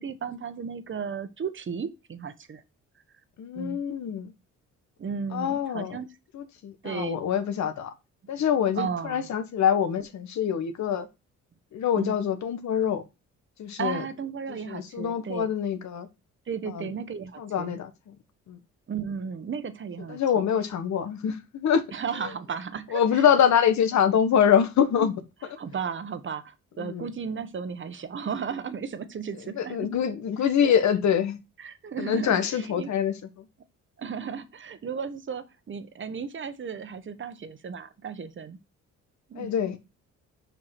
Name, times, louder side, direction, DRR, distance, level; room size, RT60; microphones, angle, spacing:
voice 1, 0.0-2.6 3.5-3.8 5.0-6.1 6.8-7.2 8.8-9.3 12.0-12.2 13.8-15.5 16.5-17.7 18.9-20.2 21.9-23.3 25.0-25.1 25.6-29.9 30.6-30.7 31.6-32.9 34.0-38.6 39.3-39.5, right 6 dB, 40° right, 1.1 m, -34 dB
voice 2, 3.4-4.3 5.3-6.0 6.3-7.9 8.3-11.1 11.7-13.0 13.6-14.0 14.5-16.1 16.7-16.9 17.4-18.1 18.5-18.6 20.1-21.8 22.9-25.1 26.8-27.1 29.6-31.4 32.0-33.5 39.4-39.8, left 8 dB, 65° left, 1.4 m, -25 dB
5.7 x 5.0 x 5.8 m
cardioid pair, 90°, 30 cm